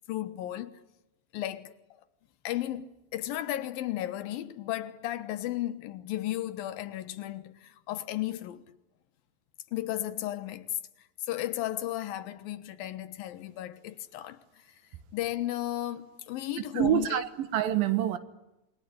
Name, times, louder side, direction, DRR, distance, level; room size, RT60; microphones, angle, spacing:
voice 1, 0.1-0.8 1.3-1.7 2.4-8.6 9.7-10.8 11.3-14.4 14.7-14.8 15.1-17.2, left 14 dB, 90° left, 3.0 m, -34 dB
voice 2, 16.8-18.2, right 11 dB, 85° right, 3.1 m, -26 dB
27.0 x 22.0 x 9.9 m
omnidirectional pair, 4.0 m